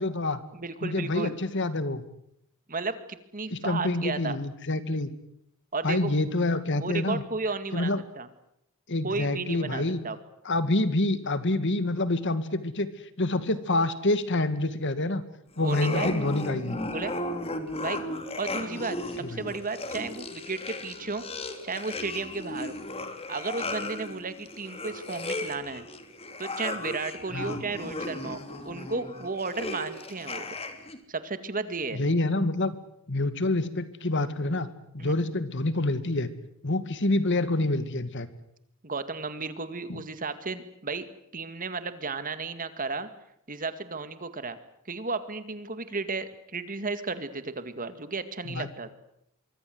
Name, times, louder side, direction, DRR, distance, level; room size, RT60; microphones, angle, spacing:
voice 1, 0.0-0.4 0.8-2.0 3.5-5.1 5.8-7.2 7.7-8.0 8.9-10.0 10.5-12.9 13.2-15.2 15.6-16.8 19.2-19.5 27.3-27.6 31.9-32.8 33.1-34.7 34.9-36.3 36.6-38.3 39.9-40.0 48.5-48.7, left 2 dB, 55° left, 12 dB, 2.1 m, -27 dB
voice 2, 0.5-1.3 2.7-4.4 5.7-6.2 6.7-8.3 9.0-10.2 15.6-16.1 16.7-17.2 17.8-18.0 18.4-21.2 21.6-22.8 23.3-25.9 26.4-30.6 31.1-32.0 35.0-35.2 38.8-41.1 41.3-43.1 43.5-44.6 44.9-48.9, right 3 dB, 40° right, 11 dB, 2.1 m, -34 dB
sound 1, 15.6-31.0, left 2 dB, 25° left, 2.9 m, -36 dB
24.5 x 24.0 x 7.9 m, 0.74 s
head